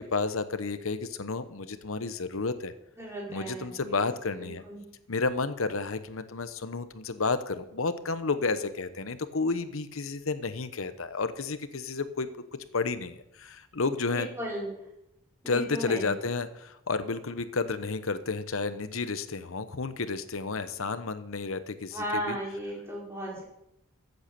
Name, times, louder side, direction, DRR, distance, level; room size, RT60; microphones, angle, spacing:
voice 1, 0.0-2.7 3.3-4.6 5.1-12.3 12.7-14.3 15.5-22.4, left 4 dB, 85° left, 12 dB, 0.9 m, -31 dB
voice 2, 3.0-4.1 4.4-4.8 14.1-14.7 15.4-16.1 21.9-23.4, equal, 15° right, -5 dB, 4.8 m, -35 dB
14.5 x 8.0 x 6.8 m, 0.83 s
head